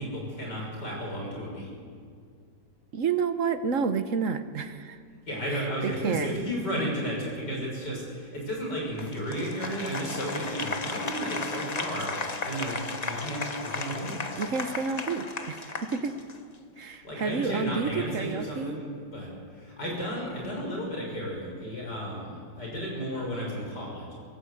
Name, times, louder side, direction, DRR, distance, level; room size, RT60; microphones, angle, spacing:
voice 1, 0.0-1.7 5.3-12.8 13.0-14.2 16.7-24.1, equal, 60° left, -1 dB, 6.7 m, -33 dB
voice 2, 2.9-5.0 5.5-6.4 14.4-16.2 16.8-18.8, right 5 dB, 50° right, 10 dB, 1.2 m, -30 dB
Applause, 9.0-16.6, left 3 dB, 30° left, 0.9 m, -35 dB
23.5 x 17.5 x 8.1 m, 2.1 s
omnidirectional pair, 2.1 m